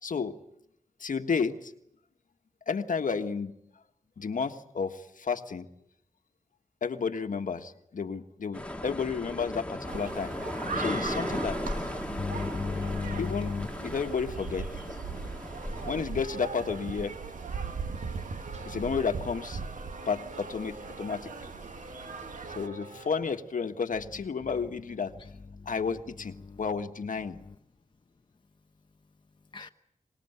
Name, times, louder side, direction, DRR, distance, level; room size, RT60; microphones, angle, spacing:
voice 1, 0.0-0.3 1.0-1.7 2.7-3.5 4.2-5.7 6.8-10.3 10.8-11.6 13.2-13.5 13.8-14.7 15.9-17.1 18.6-19.6 20.1-21.3 22.5-25.1 25.6-27.4 29.6-29.7, left 5 dB, 75° left, 7 dB, 1.5 m, -32 dB
sound 1, 8.5-16.0, left 1 dB, 10° left, 1.6 m, -36 dB
sound 2, 9.9-22.7, right 4 dB, 75° right, 1.4 m, -39 dB
voice 2, 12.1-13.7 25.6-25.7 26.4-26.6 29.5-29.7, left 4 dB, 35° left, 6 dB, 0.9 m, -34 dB
sound 3, 15.4-23.4, right 1 dB, 60° right, 6.0 m, -47 dB
25.0 x 20.5 x 8.1 m, 0.76 s
wide cardioid pair, 105°, 14 cm